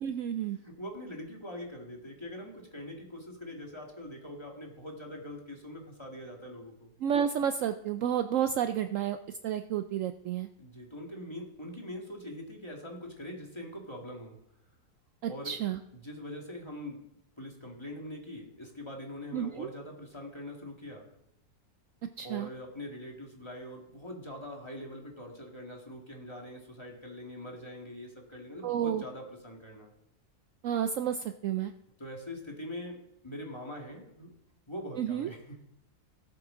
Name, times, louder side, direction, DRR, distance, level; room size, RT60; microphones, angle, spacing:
voice 1, 0.0-0.6 7.0-10.5 15.2-15.8 19.3-19.7 22.2-22.5 28.6-29.0 30.6-31.7 35.0-35.3, right 9 dB, 70° right, 9 dB, 0.8 m, -31 dB
voice 2, 0.5-6.9 10.6-14.4 15.2-15.6 15.9-17.0 17.4-21.1 22.2-29.9 32.0-34.3 34.7-35.6, left 1 dB, 20° left, 0 dB, 1.9 m, -43 dB
18.0 x 7.7 x 3.8 m, 0.81 s
omnidirectional pair, 1.6 m